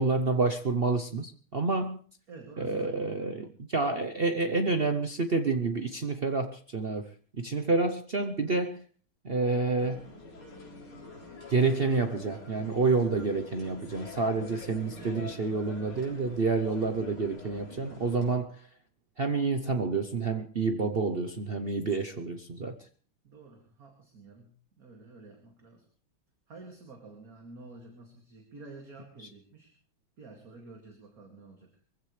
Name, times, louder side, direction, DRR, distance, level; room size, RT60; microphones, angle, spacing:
voice 1, 0.0-2.0 2.6-7.0 7.4-8.8 9.2-10.0 11.5-18.6 19.2-22.8, right 3 dB, 60° right, 7 dB, 0.5 m, -28 dB
voice 2, 2.3-3.6 23.2-25.9 26.5-29.7 30.2-31.7, right 3 dB, 45° right, 2 dB, 2.8 m, -50 dB
sound 1, 9.8-18.4, left 2 dB, 75° left, 4.7 m, -46 dB
23.5 x 15.5 x 3.3 m, 0.43 s
omnidirectional pair, 2.3 m